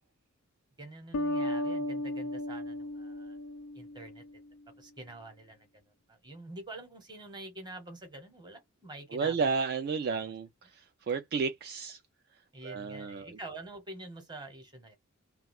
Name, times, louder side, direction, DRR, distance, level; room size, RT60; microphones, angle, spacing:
voice 1, 0.8-3.4 3.7-4.4 4.8-9.5 10.1-10.3 12.5-15.0, right 2 dB, 20° right, 1.0 m, -47 dB
sound 1, 1.1-4.5, left 1 dB, 80° left, 0.5 m, -35 dB
voice 2, 9.1-12.0 12.6-13.3, right 5 dB, 50° right, 0.3 m, -32 dB
2.3 x 2.3 x 3.4 m
head